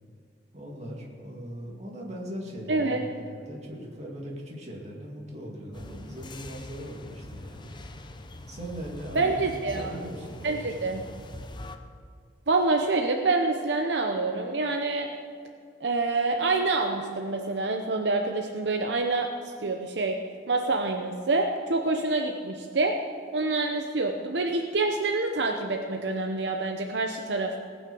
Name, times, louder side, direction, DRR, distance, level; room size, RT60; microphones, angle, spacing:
voice 1, 0.5-7.8 8.5-10.9, equal, 40° right, -1 dB, 2.3 m, -39 dB
voice 2, 2.7-3.0 9.1-9.9 10.4-11.0 12.5-15.1 15.8-19.3 19.6-20.2 20.5-22.9 23.3-27.6, right 3 dB, 75° right, 3 dB, 0.8 m, -26 dB
sound 1, 5.7-11.8, left 2 dB, 25° left, 0.7 m, -43 dB
18.5 x 6.3 x 7.0 m, 2.2 s
head